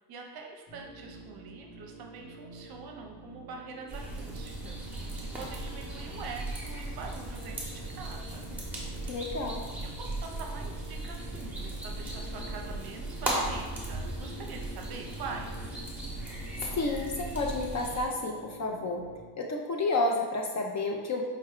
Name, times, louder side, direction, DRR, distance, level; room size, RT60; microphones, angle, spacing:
voice 1, 0.1-5.1 5.4-8.5 9.8-15.8, right 4 dB, 55° right, 2 dB, 0.6 m, -44 dB
sound 1, 0.7-19.2, right 2 dB, 20° left, 0.9 m, -48 dB
sound 2, 3.9-18.0, right 1 dB, 5° right, 0.8 m, -37 dB
voice 2, 9.1-9.6 16.8-19.0 19.4-21.2, left 2 dB, 40° left, 1 dB, 0.4 m, -30 dB
4.6 x 2.2 x 3.5 m, 1.4 s
cardioid pair, 135°, 46 cm